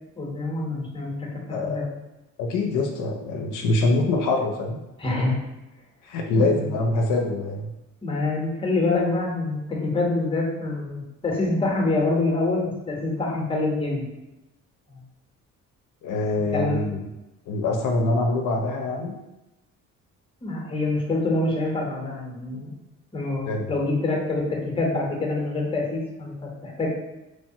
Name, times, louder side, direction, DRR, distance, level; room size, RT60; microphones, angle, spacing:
voice 1, 0.2-1.8 5.0-5.4 6.3-6.7 8.0-14.1 14.9-15.0 16.5-16.9 20.4-22.7 23.1-26.9, left 2 dB, 15° left, -1 dB, 0.7 m, -26 dB
voice 2, 1.5-1.9 2.4-4.8 6.0-7.7 16.0-17.1 17.5-19.2 23.5-23.7, left 2 dB, 70° left, 1 dB, 0.5 m, -24 dB
3.1 x 2.0 x 2.7 m, 0.98 s
cardioid pair, 90°, 33 cm